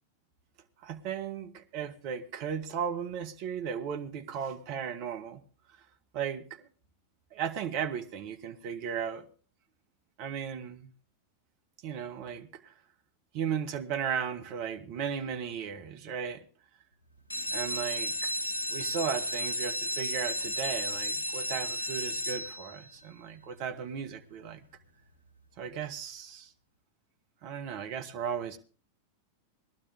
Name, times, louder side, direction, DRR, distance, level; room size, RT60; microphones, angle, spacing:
voice 1, 0.8-5.4 6.1-6.7 7.3-9.3 10.2-10.9 11.8-12.7 13.3-16.4 17.5-18.3 18.7-24.6 25.6-26.5 27.4-28.6, right 7 dB, 45° right, 1.3 m, -36 dB
sound 1, 17.2-22.9 23.5-24.0 24.4-24.5 24.8-24.9 25.3-25.4, left 1 dB, 80° left, 1.1 m, -33 dB
19.0 x 12.0 x 3.5 m
figure-of-eight pair, 90°, 0 cm